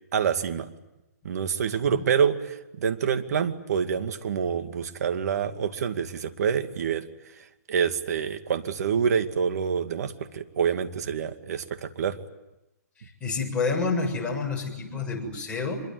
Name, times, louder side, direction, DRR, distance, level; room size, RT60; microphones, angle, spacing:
voice 1, 0.1-0.7 1.2-7.0 7.4-12.2, right 7 dB, 65° right, 8 dB, 2.3 m, -27 dB
voice 2, 1.7-2.0 13.2-15.8, left 4 dB, 10° left, -2 dB, 7.4 m, -29 dB
26.0 x 23.0 x 9.5 m, 0.94 s
hypercardioid pair, 140°, 9 cm